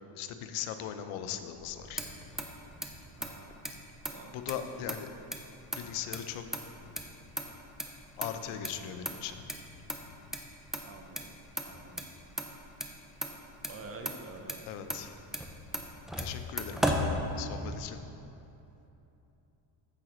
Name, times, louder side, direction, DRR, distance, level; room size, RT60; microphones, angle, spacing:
voice 1, 0.2-2.2 4.3-5.1 5.8-6.4 6.8-6.9 8.2-9.5 10.0-10.2 14.7-15.1 16.2-17.1 17.3-18.1, left 9 dB, 85° left, 9 dB, 0.7 m, -39 dB
Motor vehicle (road), 1.6-17.8, equal, ahead, 0.3 m, -38 dB
voice 2, 3.2-3.5 4.1-4.3 4.6-4.9 10.8-11.3 11.6-12.1 13.7-14.7, right 3 dB, 30° right, 3 dB, 0.7 m, -47 dB
14.0 x 4.9 x 3.0 m, 2.8 s
cardioid pair, 125°, 48 cm